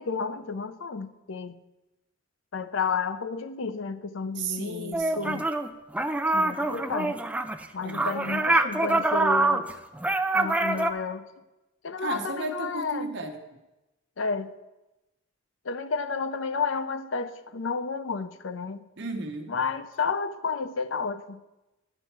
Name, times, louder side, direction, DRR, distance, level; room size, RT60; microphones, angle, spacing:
voice 1, 0.0-1.6 2.5-5.5 6.3-7.2 7.7-9.6 10.3-11.2 11.8-13.1 14.2-14.5 15.6-18.8 19.5-21.4, left 5 dB, 70° left, 0.5 m, -31 dB
voice 2, 4.3-5.5 7.8-8.6 12.0-13.6 19.0-19.5, right 3 dB, 60° right, 1.0 m, -35 dB
sound 1, 4.9-5.7 5.9-10.9, right 2 dB, 5° right, 0.4 m, -25 dB
10.0 x 4.4 x 7.2 m
head